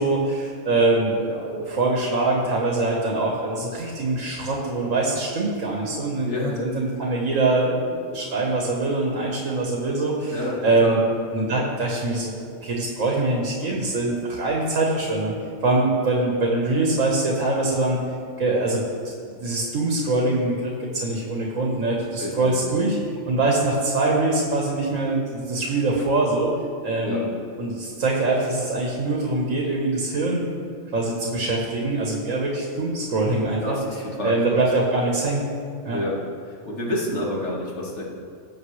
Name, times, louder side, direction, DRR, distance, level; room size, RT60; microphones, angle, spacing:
voice 1, 0.0-11.0 11.3-12.3 12.6-15.3 15.6-18.0 18.4-18.8 19.4-23.0 23.3-26.5 26.8-27.3 27.6-30.4 30.9-33.8 34.2-35.4 35.9-36.0, right 2 dB, 85° right, -2 dB, 1.8 m, -23 dB
voice 2, 6.2-6.6 10.3-10.6 10.8-11.1 22.2-22.7 27.0-27.2 33.6-34.3 35.9-36.2 36.6-38.0, left 1 dB, 60° left, -3 dB, 2.2 m, -28 dB
19.0 x 7.2 x 3.3 m, 2.4 s
omnidirectional pair, 1.3 m